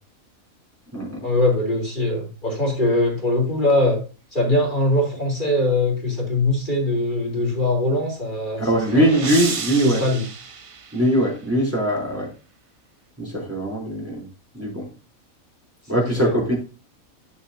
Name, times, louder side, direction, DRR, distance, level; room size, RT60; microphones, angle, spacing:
voice 1, 1.2-4.0 4.3-8.7 8.9-9.1 9.8-10.3 15.9-16.2, left 1 dB, 35° left, -1 dB, 3.6 m, -21 dB
sound 1, 8.2-11.5, right 5 dB, 40° right, 0.4 m, -33 dB
voice 2, 8.6-10.0 10.9-12.3 13.2-14.3 14.5-14.9 15.9-16.6, right 1 dB, 10° right, -3 dB, 3.3 m, -21 dB
10.0 x 7.7 x 2.7 m, 0.31 s
omnidirectional pair, 1.4 m